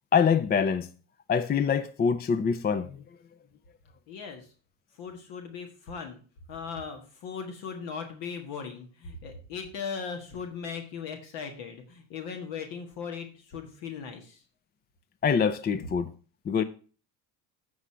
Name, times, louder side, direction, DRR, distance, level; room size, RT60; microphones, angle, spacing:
voice 1, 0.1-0.9 1.3-3.0 15.2-16.1 16.5-16.6, left 6 dB, 25° left, 0.4 m, -25 dB
voice 2, 4.1-4.5 5.0-6.2 6.5-14.4, left 6 dB, 75° left, 1.6 m, -38 dB
7.9 x 5.0 x 5.5 m
supercardioid pair, 95°, 44 cm